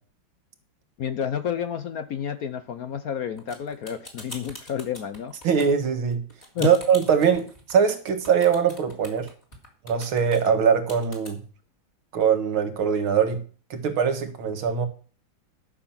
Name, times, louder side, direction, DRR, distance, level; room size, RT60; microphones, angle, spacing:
voice 1, 1.0-5.3 6.5-6.7, left 8 dB, 60° left, 1.0 m, -30 dB
sound 1, 3.4-11.3, left 1 dB, 20° left, 3.0 m, -43 dB
voice 2, 5.4-6.2 6.6-9.3 9.8-11.4 12.1-13.4 13.7-14.9, right 7 dB, 85° right, 2.4 m, -22 dB
12.5 x 6.7 x 5.7 m
omnidirectional pair, 2.2 m